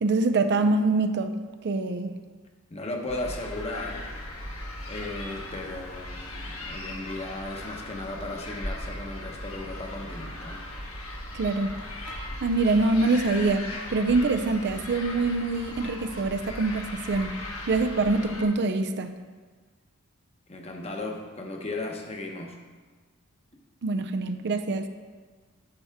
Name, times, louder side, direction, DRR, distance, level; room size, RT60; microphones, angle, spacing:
voice 1, 0.0-1.3 1.6-2.2 11.3-11.7 12.1-17.3 17.7-19.1 23.8-24.9, right 3 dB, 50° right, 7 dB, 0.5 m, -25 dB
voice 2, 2.7-4.1 4.9-10.6 20.5-22.6, left 2 dB, 30° left, 2 dB, 1.0 m, -36 dB
sound 1, 3.1-18.4, left 1 dB, 65° left, 1.8 m, -38 dB
10.5 x 7.0 x 3.6 m, 1.4 s
head